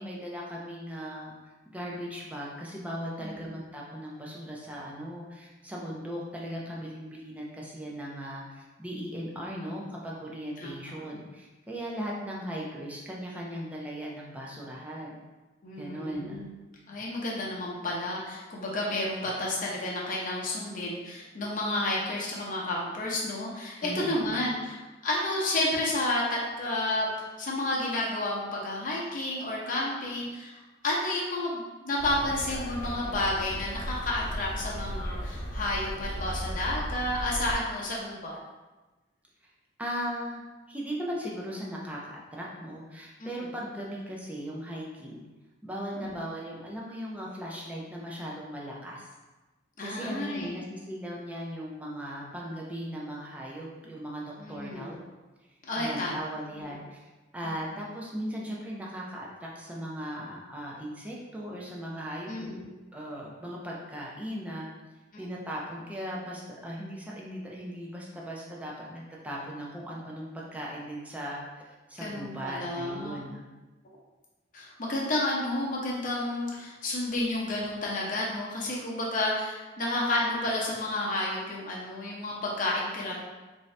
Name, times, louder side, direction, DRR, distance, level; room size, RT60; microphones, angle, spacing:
voice 1, 0.0-1.4 1.7-15.2 15.8-16.4 23.8-24.4 39.4-39.5 39.8-45.3 45.6-49.1 49.8-55.0 55.8-57.0 57.3-62.5 62.9-64.7 65.2-73.5, equal, 10° right, -4 dB, 0.6 m, -38 dB
voice 2, 3.2-3.5 10.6-10.7 15.6-16.5 16.9-24.8 25.0-38.4 43.2-43.5 46.0-46.1 49.8-50.5 54.4-54.9 55.7-56.2 57.4-57.5 62.3-62.6 65.1-65.2 72.0-73.2 74.5-83.2, left 1 dB, 45° left, -4 dB, 0.8 m, -31 dB
sound 1, 32.0-37.6, equal, 85° left, 0.8 m, -36 dB
3.7 x 2.7 x 3.3 m, 1.2 s
head